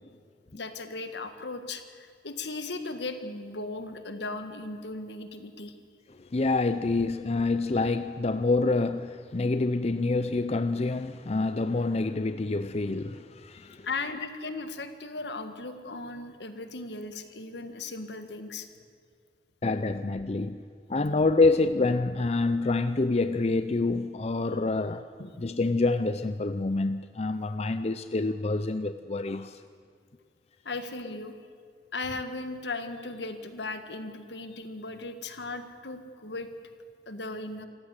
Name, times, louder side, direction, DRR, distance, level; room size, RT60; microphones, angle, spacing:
voice 1, 0.5-5.7 13.5-18.7 25.2-25.3 30.7-31.3 31.9-36.5 37.1-37.7, left 3 dB, 75° left, 1.8 m, -37 dB
voice 2, 6.2-13.9 19.6-20.6 20.9-25.1 25.4-29.6, left 3 dB, 35° left, 0.6 m, -27 dB
26.5 x 15.0 x 8.2 m
head